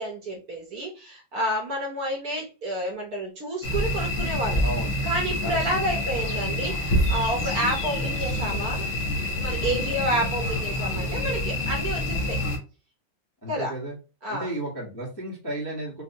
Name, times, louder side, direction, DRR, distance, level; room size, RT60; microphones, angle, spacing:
voice 1, 0.0-4.6 5.0-8.9 9.4-12.4 13.5-13.7 14.2-14.5, right 1 dB, 60° right, 0 dB, 1.1 m, -30 dB
sound 1, 3.6-12.6, left 1 dB, 60° left, 0.7 m, -27 dB
voice 2, 4.6-4.9 5.4-5.6 9.6-9.9 13.4-14.0 14.3-16.0, right 1 dB, 20° left, -5 dB, 0.7 m, -33 dB
4.3 x 2.1 x 2.7 m, 0.33 s
omnidirectional pair, 2.2 m